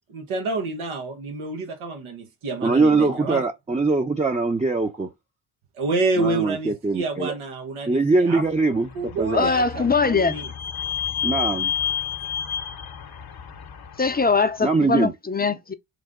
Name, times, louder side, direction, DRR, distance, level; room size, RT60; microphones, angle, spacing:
voice 1, 0.1-3.4 5.7-8.4 8.9-10.5, right 2 dB, 80° right, 1.1 m, -28 dB
voice 2, 2.6-5.1 6.2-7.3 7.9-8.9 9.2-9.5 11.2-11.7 14.6-15.1, right 3 dB, 15° right, 0.7 m, -22 dB
Vehicle / Squeak, 8.8-14.4, left 8 dB, 50° left, 0.8 m, -30 dB
voice 3, 9.3-10.4 14.0-15.7, left 4 dB, 20° left, 0.6 m, -21 dB
3.3 x 2.6 x 3.6 m
supercardioid pair, 45°, 50 cm